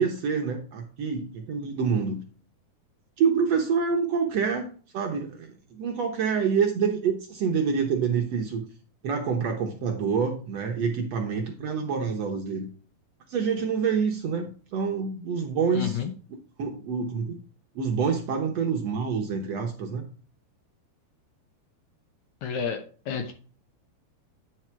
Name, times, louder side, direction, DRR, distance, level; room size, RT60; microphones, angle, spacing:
voice 1, 0.0-2.2 3.2-5.5 5.8-8.6 9.0-12.7 13.3-16.0 16.6-17.3 17.7-20.1, right 6 dB, 80° right, 2 dB, 1.5 m, -27 dB
voice 2, 15.7-16.1 22.4-22.8 23.1-23.3, left 6 dB, 75° left, 6 dB, 1.7 m, -30 dB
9.8 x 4.8 x 4.4 m, 0.40 s
omnidirectional pair, 4.3 m